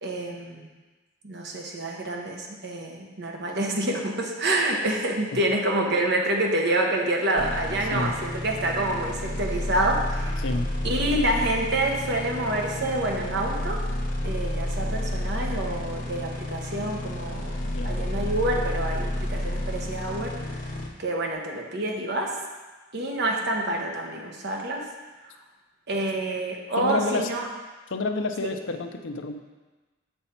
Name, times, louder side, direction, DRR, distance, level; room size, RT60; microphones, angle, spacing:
voice 1, 0.0-0.7 1.2-10.4 10.8-13.8 14.2-17.6 17.8-20.6 21.0-22.3 22.9-24.9 25.9-27.4, right 1 dB, 55° right, 0 dB, 1.0 m, -27 dB
sound 1, 7.4-20.9, left 1 dB, 45° left, 0.9 m, -30 dB
voice 2, 10.4-10.7 17.7-18.0 26.8-27.3 27.9-29.4, left 3 dB, 70° left, 5 dB, 0.6 m, -29 dB
6.7 x 5.6 x 4.4 m, 1.2 s
head